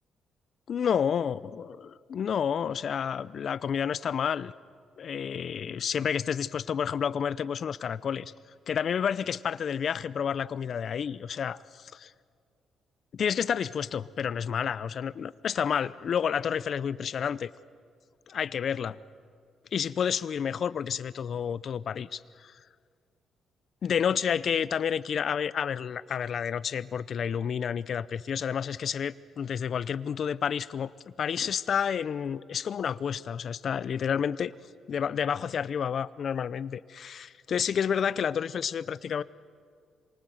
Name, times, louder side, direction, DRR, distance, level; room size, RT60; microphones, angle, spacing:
voice 1, 0.7-4.5 5.0-8.3 8.7-12.1 13.1-17.5 18.3-19.0 19.7-22.5 23.8-30.9 31.2-34.5 34.9-39.2, left 7 dB, 55° left, 18 dB, 0.6 m, -30 dB
26.5 x 24.5 x 7.9 m, 2.1 s
cardioid pair, 90°, 0 cm